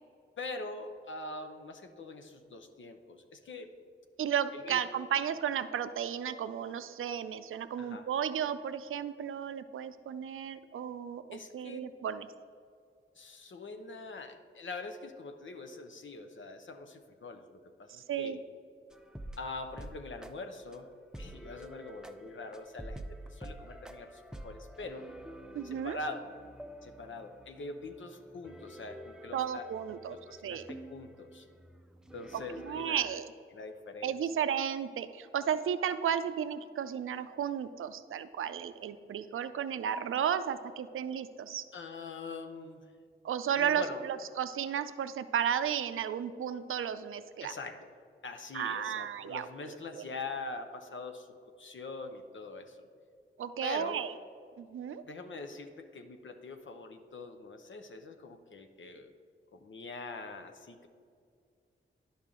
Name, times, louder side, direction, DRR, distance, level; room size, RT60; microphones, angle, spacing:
voice 1, 0.4-3.7 4.5-4.8 7.8-8.1 11.3-11.8 13.2-17.4 17.8-18.4 19.4-20.9 21.2-23.0 23.3-25.1 25.6-26.2 26.8-29.7 30.1-31.5 32.1-33.2 33.5-34.2 41.7-42.8 43.6-44.0 47.4-47.9 48.2-51.3 51.6-52.9 53.6-54.0 55.0-59.1 59.5-60.9, left 3 dB, 65° left, 6 dB, 0.8 m, -43 dB
voice 2, 4.2-12.3 17.9-18.4 25.5-26.0 29.3-30.2 30.4-30.7 32.3-33.3 34.0-41.7 43.2-47.5 48.5-50.0 53.4-54.1 54.6-55.0, right 8 dB, 75° right, 11 dB, 0.4 m, -34 dB
sound 1, 18.9-20.3 20.7-20.8 21.1-33.0, right 1 dB, 5° right, 0.6 m, -48 dB
10.5 x 5.6 x 3.7 m, 2.3 s
cardioid pair, 45°, 21 cm